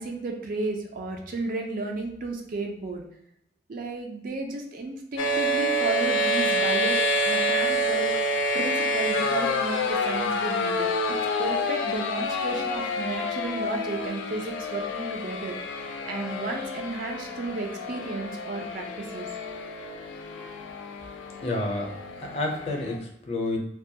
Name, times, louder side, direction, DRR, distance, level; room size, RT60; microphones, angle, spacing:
voice 1, 0.0-3.0 3.7-7.0 7.2-8.1 8.5-10.9 11.4-15.6 16.0-19.3, right 3 dB, 50° right, 2 dB, 0.4 m, -33 dB
sound 1, 5.2-23.0, left 1 dB, 90° left, 0.3 m, -28 dB
voice 2, 21.4-21.9 22.2-23.6, left 2 dB, 35° left, 0 dB, 0.5 m, -29 dB
2.2 x 2.1 x 2.7 m, 0.77 s
head